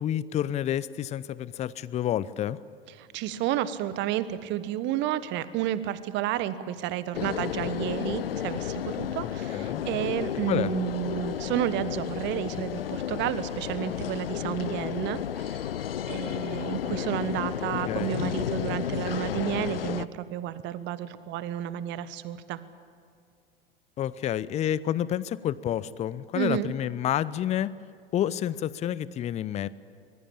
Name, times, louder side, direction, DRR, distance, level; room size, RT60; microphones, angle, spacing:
voice 1, 0.0-2.6 9.2-9.8 10.5-10.7 17.9-18.2 24.0-27.7 28.1-29.7, left 11 dB, 25° left, 19 dB, 0.7 m, -29 dB
voice 2, 3.0-15.6 16.1-22.6 26.3-26.7, right 12 dB, 40° right, 14 dB, 1.4 m, -31 dB
sound 1, 7.1-20.1, left 10 dB, 75° left, 0.7 m, -32 dB
24.5 x 21.0 x 8.8 m, 2.2 s
figure-of-eight pair, 90°, 30 cm